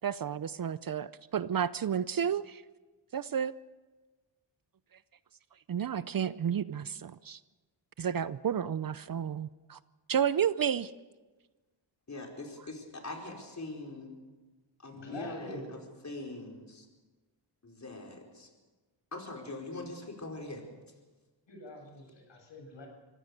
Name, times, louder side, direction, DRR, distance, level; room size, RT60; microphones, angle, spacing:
voice 1, 0.0-2.6 3.1-3.5 5.7-7.4 8.0-9.8 10.1-10.9, right 8 dB, 45° right, 16 dB, 0.6 m, -31 dB
voice 2, 12.1-14.1 14.8-15.6 16.0-16.9 17.6-18.5 19.1-20.6, left 2 dB, 35° left, 1 dB, 4.9 m, -42 dB
voice 3, 14.9-15.7 21.5-22.9, left 2 dB, 65° left, 1 dB, 7.8 m, -44 dB
24.5 x 16.5 x 6.7 m, 1.3 s
cardioid pair, 75°, 47 cm